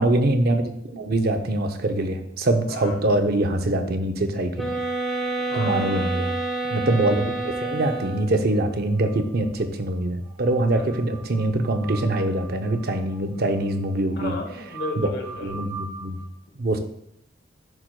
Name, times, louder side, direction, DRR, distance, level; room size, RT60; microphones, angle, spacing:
voice 1, 0.0-4.8 5.5-6.3 6.7-14.3 15.4-16.2 16.6-16.8, right 1 dB, 50° right, 6 dB, 0.6 m, -24 dB
voice 2, 2.7-3.0 5.5-6.1 10.8-10.9 14.2-15.6, left 2 dB, 55° left, 2 dB, 1.2 m, -33 dB
sound 1, 4.6-8.5, right 2 dB, 5° left, 1.2 m, -28 dB
sound 2, 8.6-9.7 9.9-10.0 10.2-16.2, right 4 dB, 70° right, 2.3 m, -42 dB
10.5 x 4.5 x 2.2 m, 0.73 s
head